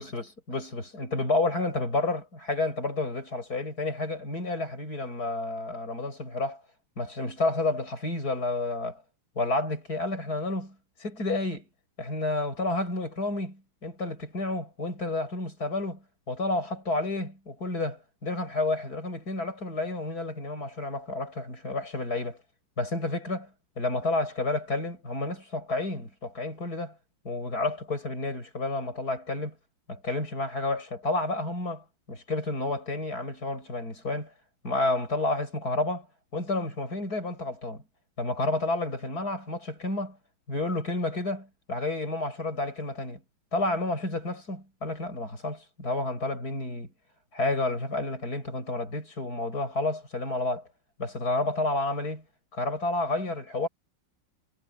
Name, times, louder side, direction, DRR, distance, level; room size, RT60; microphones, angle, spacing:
voice 1, 0.0-6.6 7.0-9.0 9.3-11.7 12.0-22.4 22.8-23.5 23.8-27.0 27.2-29.5 29.9-34.3 34.6-36.1 36.3-37.8 38.2-40.2 40.5-43.2 43.5-46.9 47.3-50.6 51.0-52.2 52.5-53.7, left 2 dB, 45° left, 8.5 m, -30 dB
omnidirectional pair, 2.4 m